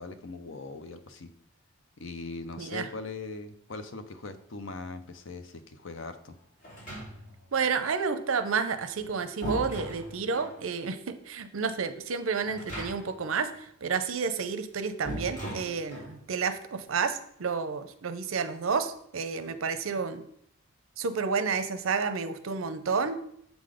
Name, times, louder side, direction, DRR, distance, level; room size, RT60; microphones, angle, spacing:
voice 1, 0.0-1.3 2.0-6.4, left 3 dB, 60° left, 10 dB, 0.6 m, -40 dB
voice 2, 2.6-2.9 7.5-20.2 21.0-23.2, right 5 dB, 75° right, 10 dB, 0.6 m, -30 dB
sound 1, 6.6-7.5 8.8-10.6 12.4-13.3 13.5-13.6 15.0-16.2, right 1 dB, 40° left, 3.0 m, -38 dB
7.1 x 3.9 x 5.0 m, 0.70 s
head